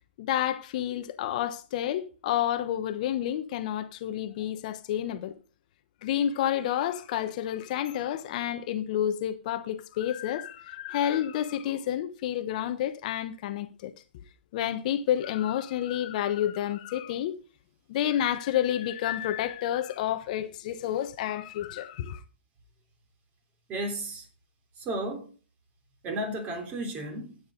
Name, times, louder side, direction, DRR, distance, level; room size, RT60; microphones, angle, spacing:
voice 1, 0.2-5.3 6.0-14.2 14.5-17.4 17.9-22.2, left 11 dB, 45° left, 1.1 m, -30 dB
voice 2, 23.7-24.2 24.8-25.3 26.0-27.4, right 1 dB, 25° right, 3.3 m, -33 dB
13.5 x 9.0 x 3.9 m
figure-of-eight pair, 125°, 6 cm